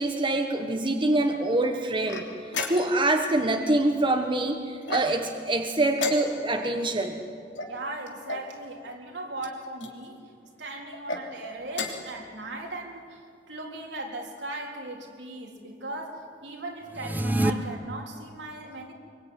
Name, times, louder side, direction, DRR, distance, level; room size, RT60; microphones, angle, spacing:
voice 1, 0.0-2.3 2.7-7.2, right 2 dB, 30° right, 3 dB, 1.4 m, -25 dB
sound 1, 2.1-3.1 4.8-5.4 5.9-6.7 7.5-8.5 9.4-9.9 10.9-11.2 11.7-12.2, left 3 dB, 85° left, 3.2 m, -34 dB
voice 2, 7.7-10.2 10.6-13.2 13.5-18.9, right 2 dB, 75° right, 1 dB, 3.7 m, -38 dB
sound 2, 16.9-17.5, right 1 dB, 10° right, 1.0 m, -25 dB
25.0 x 23.0 x 9.5 m, 2.3 s
head